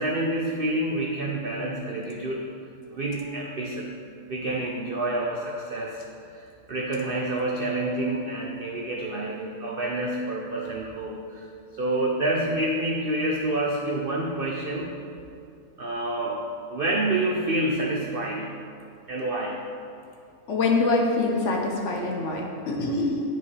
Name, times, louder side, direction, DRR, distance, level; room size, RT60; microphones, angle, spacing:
voice 1, 0.0-2.5 2.9-3.9 4.3-6.0 6.3-11.5 11.8-15.0 15.8-16.4 16.7-18.5 19.1-19.6, right 1 dB, 75° right, -1 dB, 0.5 m, -28 dB
voice 2, 20.5-23.2, left 3 dB, 60° left, 1 dB, 0.9 m, -24 dB
9.5 x 4.7 x 3.2 m, 2.4 s
omnidirectional pair, 1.7 m